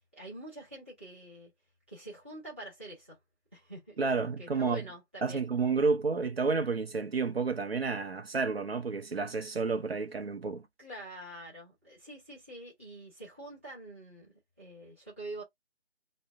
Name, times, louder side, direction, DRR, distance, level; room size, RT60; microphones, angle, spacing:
voice 1, 0.1-1.5 1.9-3.2 3.5-5.5 10.8-15.4, right 1 dB, 10° right, 0.7 m, -46 dB
voice 2, 4.0-4.9 5.2-10.6, right 4 dB, 65° right, 0.6 m, -30 dB
2.6 x 2.0 x 3.3 m
figure-of-eight pair, 155°, 33 cm